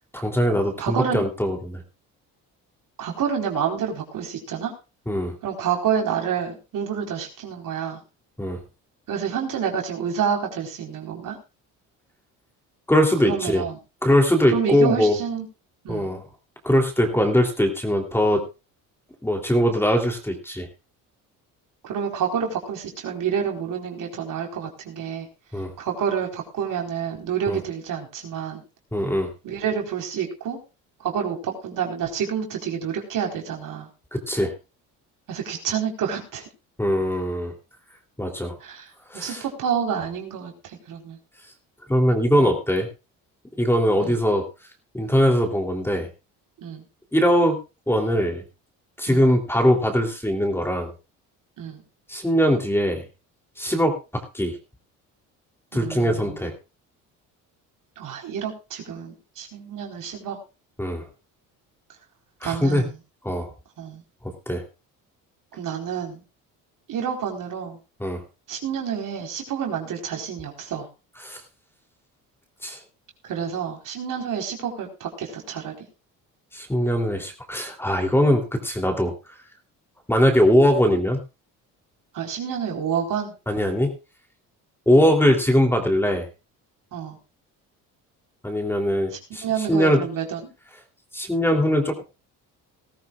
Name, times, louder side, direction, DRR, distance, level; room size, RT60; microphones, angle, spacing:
voice 1, 0.1-1.8 5.1-5.3 8.4-8.6 12.9-13.6 14.0-15.2 15.9-16.2 16.6-18.4 19.2-20.7 25.5-25.7 27.5-27.6 28.9-29.3 34.1-34.5 36.8-37.5 38.2-38.5 39.1-39.4 41.9-42.9 43.6-44.4 44.9-46.1 47.1-47.6 47.9-48.4 49.0-50.9 52.1-53.0 53.6-54.6 55.7-56.5 60.8-61.0 62.4-62.8 63.2-63.5 64.2-64.6 68.0-68.2 71.2-71.4 72.6-72.8 76.5-79.1 80.1-81.2 83.5-83.9 84.9-86.3 88.4-90.0 91.1-92.0, equal, 5° left, 3 dB, 3.1 m, -21 dB
voice 2, 0.8-1.2 3.0-4.7 5.4-8.0 9.1-11.4 13.2-13.8 14.5-15.5 15.8-16.1 21.8-25.3 25.8-28.6 29.4-30.6 31.0-33.9 35.3-36.4 38.6-41.2 42.4-42.5 44.0-44.2 46.6-46.8 49.1-49.2 51.6-51.8 55.7-56.4 58.0-60.4 62.4-63.0 63.8-64.0 65.5-66.2 66.9-67.8 68.5-70.9 73.2-75.8 82.1-83.3 86.9-87.2 89.1-90.5, right 7 dB, 65° right, 1 dB, 4.4 m, -28 dB
19.0 x 13.5 x 2.4 m, 0.30 s
cardioid pair, 95°, 35 cm